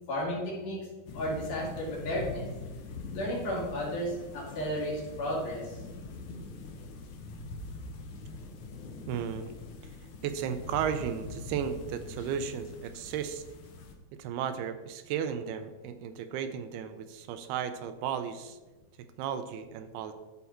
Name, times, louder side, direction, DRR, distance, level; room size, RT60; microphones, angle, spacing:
voice 1, 0.1-0.8 1.1-2.5 3.1-5.7, equal, 65° left, -5 dB, 4.4 m, -33 dB
sound 1, 1.1-13.9, left 3 dB, 85° left, 1.6 m, -43 dB
voice 2, 9.1-9.5 9.8-10.0 10.2-13.4 14.2-18.6 19.2-20.1, right 8 dB, 80° right, 9 dB, 2.5 m, -34 dB
13.0 x 4.7 x 4.3 m, 1.2 s
omnidirectional pair, 4.6 m